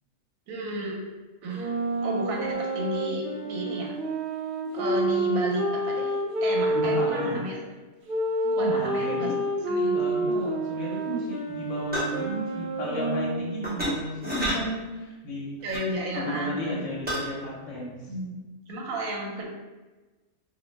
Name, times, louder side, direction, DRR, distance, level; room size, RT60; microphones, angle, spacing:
voice 1, 0.5-1.0 1.4-4.0 4.7-7.6 8.4-9.3 9.7-10.0 15.6-16.8 18.1-19.4, equal, 85° right, -1 dB, 1.0 m, -33 dB
sound 1, 1.5-7.3 8.1-13.7, right 2 dB, 60° right, 0.5 m, -28 dB
voice 2, 6.7-7.4 8.6-9.4 9.9-15.6 16.1-18.1, equal, 70° left, -4 dB, 1.0 m, -33 dB
sound 2, 11.9-12.2 13.6-13.9 14.2-14.6 15.7-15.9 17.1-17.2, equal, 10° right, 0.6 m, -28 dB
2.5 x 2.0 x 3.1 m, 1.2 s
omnidirectional pair, 1.4 m